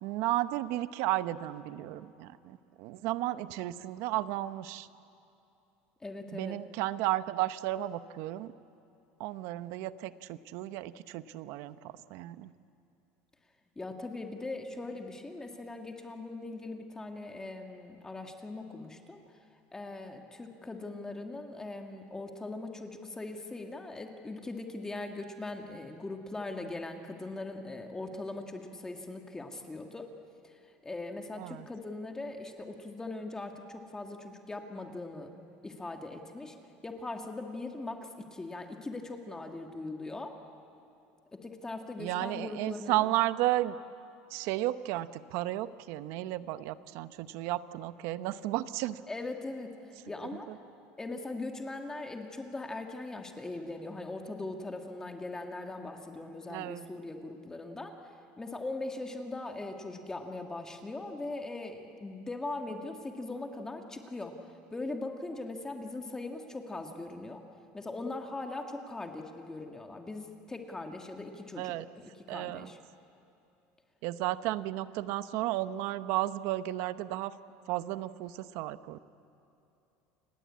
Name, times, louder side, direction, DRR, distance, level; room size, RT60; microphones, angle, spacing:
voice 1, 0.0-4.9 6.3-8.5 9.2-12.5 31.4-31.7 42.0-43.8 44.3-49.0 50.5-50.6 56.5-56.9 71.6-71.9 72.3-72.7 74.0-77.3 77.7-79.0, right 15 dB, 70° right, 13 dB, 0.9 m, -33 dB
voice 2, 6.0-6.6 13.7-19.2 19.7-30.1 30.4-35.3 35.6-36.5 36.8-40.4 41.3-43.1 49.1-49.8 50.1-50.5 51.0-57.9 58.4-64.4 64.7-67.4 67.7-72.8, left 2 dB, 10° left, 4 dB, 1.7 m, -40 dB
29.0 x 20.5 x 8.6 m, 2.8 s
cardioid pair, 135°, 5 cm